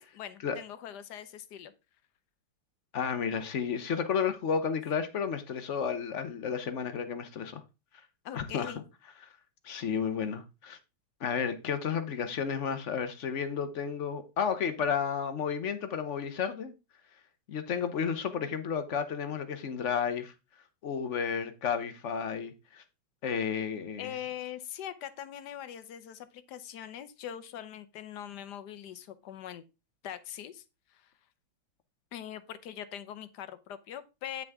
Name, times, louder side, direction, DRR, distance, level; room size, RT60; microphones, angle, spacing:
voice 1, 0.0-1.7 8.2-8.8 24.0-29.6 30.0-30.6 30.9-31.1 32.1-34.4, left 10 dB, 65° left, 1.3 m, -42 dB
voice 2, 2.9-7.6 8.3-8.7 9.6-10.8 11.2-16.7 17.5-20.3 20.8-22.8 23.2-24.1, left 6 dB, 50° left, 1.0 m, -32 dB
9.2 x 6.1 x 3.5 m
omnidirectional pair, 2.1 m